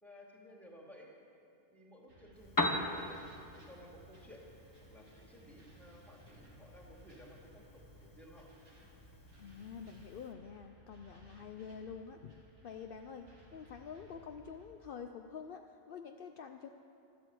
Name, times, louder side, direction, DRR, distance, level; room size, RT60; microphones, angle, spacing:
voice 1, 0.0-1.1 1.7-3.2 3.5-4.4 4.9-8.5, equal, ahead, -2 dB, 2.3 m, -56 dB
sound 1, 2.1-14.7, right 1 dB, 70° right, 2.7 m, -60 dB
Piano, 2.3-10.3, left 1 dB, 20° left, 0.7 m, -42 dB
voice 2, 9.4-16.7, left 6 dB, 65° left, 6 dB, 0.5 m, -47 dB
13.0 x 12.5 x 7.9 m, 2.6 s
omnidirectional pair, 1.5 m